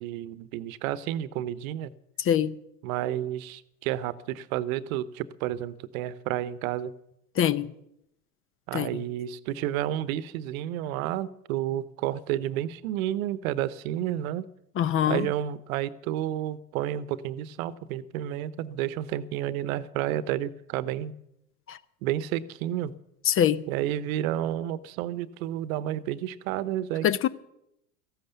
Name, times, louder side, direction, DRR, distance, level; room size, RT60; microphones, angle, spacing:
voice 1, 0.0-1.9 2.8-6.9 8.7-14.4 15.1-21.1 22.0-22.9 23.7-27.1, right 12 dB, 60° right, 1.0 m, -31 dB
voice 2, 2.2-2.5 7.4-7.7 8.7-8.9 14.8-15.3 21.7-21.8 23.3-23.6 27.0-27.3, left 10 dB, 30° left, 0.7 m, -24 dB
14.5 x 11.5 x 6.9 m
hypercardioid pair, 90°, 46 cm